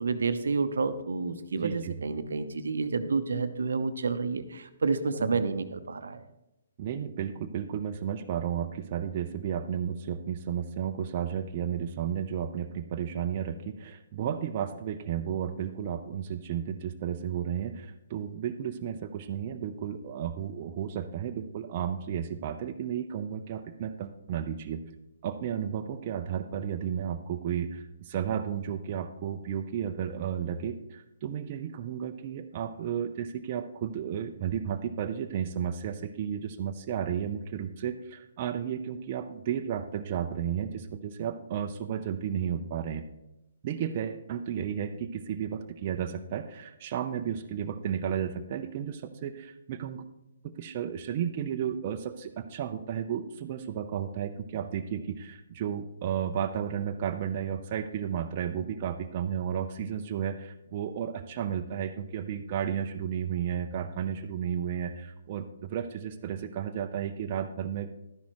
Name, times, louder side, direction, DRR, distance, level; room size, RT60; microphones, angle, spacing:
voice 1, 0.0-6.2, right 4 dB, 75° right, 10 dB, 0.8 m, -29 dB
voice 2, 1.6-2.0 5.2-5.4 6.8-24.8 25.2-43.0 43.6-50.0 50.4-67.9, right 9 dB, 40° right, 6 dB, 0.6 m, -33 dB
12.0 x 10.0 x 3.0 m, 0.92 s
hypercardioid pair, 140°, 0 cm